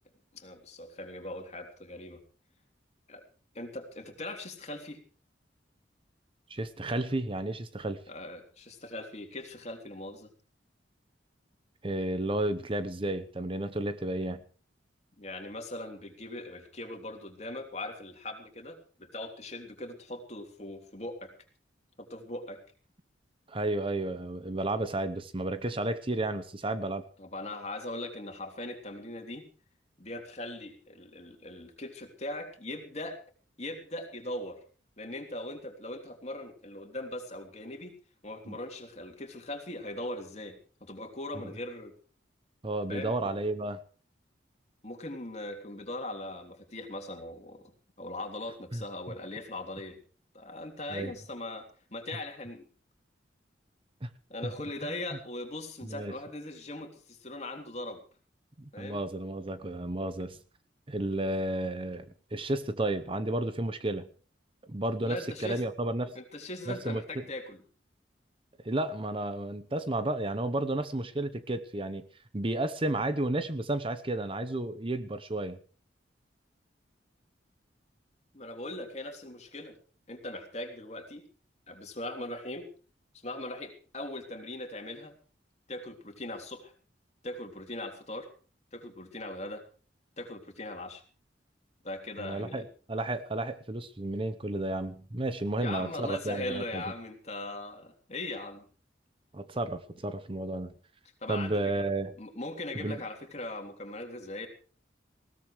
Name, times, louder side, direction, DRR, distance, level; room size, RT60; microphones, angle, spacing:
voice 1, 0.3-2.2 3.1-3.2 3.5-5.0 8.1-10.3 15.2-21.3 22.0-22.6 27.2-29.4 30.0-33.2 33.6-34.6 35.0-37.9 38.2-41.9 42.9-43.3 44.8-47.6 48.0-50.0 50.3-52.7 54.3-58.0 58.7-59.0 65.0-65.6 66.1-67.6 78.3-79.7 80.1-81.2 81.7-82.7 83.2-85.1 85.7-86.7 87.2-88.3 88.7-89.6 90.2-91.0 91.8-92.7 95.6-98.7 101.2-101.8 102.2-104.5, left 1 dB, 40° left, 4 dB, 3.3 m, -40 dB
voice 2, 6.5-8.0 11.8-14.4 23.5-27.1 38.5-38.6 42.6-43.8 48.7-48.8 50.9-51.1 54.0-54.1 54.4-54.5 55.8-56.1 58.6-60.4 60.9-64.1 64.7-66.1 66.7-67.2 68.6-72.1 72.3-75.6 92.2-96.8 99.3-100.7 101.3-102.1 102.7-103.0, right 1 dB, 30° right, 11 dB, 0.9 m, -32 dB
20.0 x 17.5 x 3.2 m, 0.40 s
head